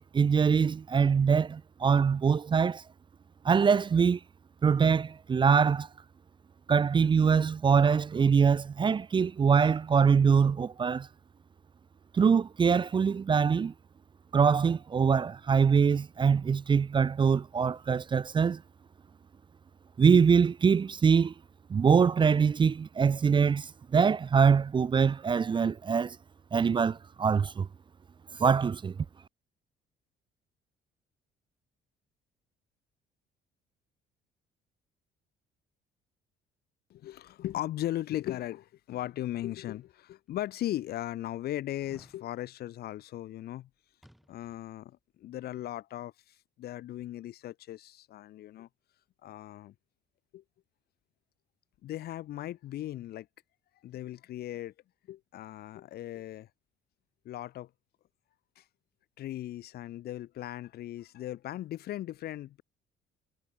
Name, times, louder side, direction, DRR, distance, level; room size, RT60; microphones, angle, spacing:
voice 1, 0.0-2.8 3.4-4.2 4.6-5.9 6.7-11.1 12.1-13.7 14.3-18.6 20.0-21.3 21.7-26.2 26.5-27.7 28.4-28.9, right 6 dB, 30° right, 0.7 m, -24 dB
voice 2, 36.9-43.7 44.3-48.7 49.2-49.7 50.3-50.4 51.8-53.3 53.8-54.7 55.1-56.5 57.2-57.7 58.6-58.7 59.2-62.6, left 13 dB, 70° left, 2.8 m, -38 dB
sound 1, 41.6-42.2 44.0-44.7 45.0-45.1, equal, ahead, 5.1 m, -58 dB
cardioid pair, 110°, 17 cm